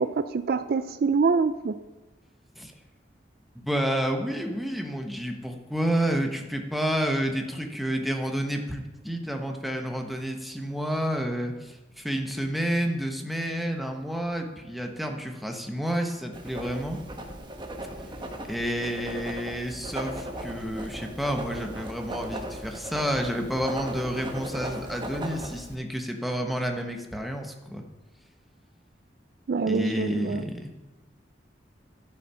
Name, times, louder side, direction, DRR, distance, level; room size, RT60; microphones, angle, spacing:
voice 1, 0.0-1.8 29.5-30.4, right 4 dB, 55° right, 12 dB, 0.4 m, -25 dB
voice 2, 3.5-17.0 18.5-27.8 29.7-30.7, equal, ahead, 3 dB, 1.1 m, -30 dB
Writing, 16.3-25.7, right 1 dB, 25° right, 1.2 m, -37 dB
13.0 x 6.5 x 5.6 m, 1.1 s
head